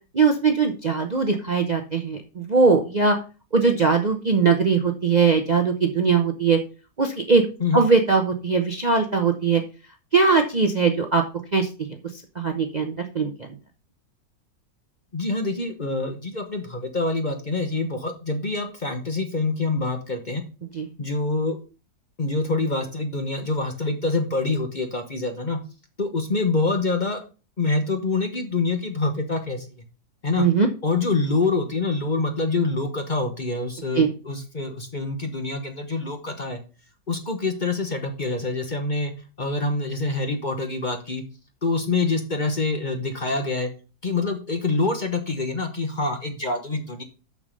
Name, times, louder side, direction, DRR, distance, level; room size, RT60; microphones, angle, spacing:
voice 1, 0.1-3.2 3.5-6.6 7.0-7.4 7.7-9.6 10.1-11.2 11.5-11.7 12.4-13.3 20.7-20.9 30.4-30.7 33.9-34.1, right 5 dB, 35° right, 4 dB, 0.7 m, -20 dB
voice 2, 15.1-20.4 21.0-21.6 22.2-25.6 26.0-27.2 27.6-29.8 30.2-30.5 30.8-36.6 37.1-39.1 39.4-41.2 41.6-43.7 44.0-47.0, left 3 dB, 35° left, 5 dB, 1.1 m, -26 dB
6.7 x 6.7 x 5.3 m, 0.34 s
omnidirectional pair, 1.7 m